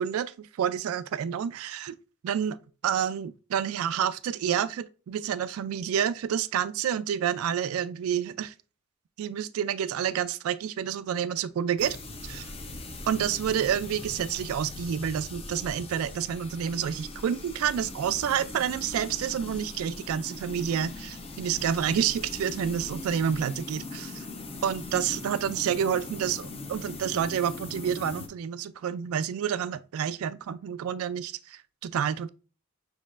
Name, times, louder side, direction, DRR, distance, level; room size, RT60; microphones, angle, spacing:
voice 1, 0.0-1.9 2.2-2.6 2.8-8.5 9.2-12.0 12.2-12.5 13.1-24.3 24.6-32.3, right 8 dB, 85° right, 0.3 m, -29 dB
sound 1, 11.8-28.3, left 2 dB, 30° left, 0.7 m, -40 dB
6.4 x 3.1 x 2.4 m
head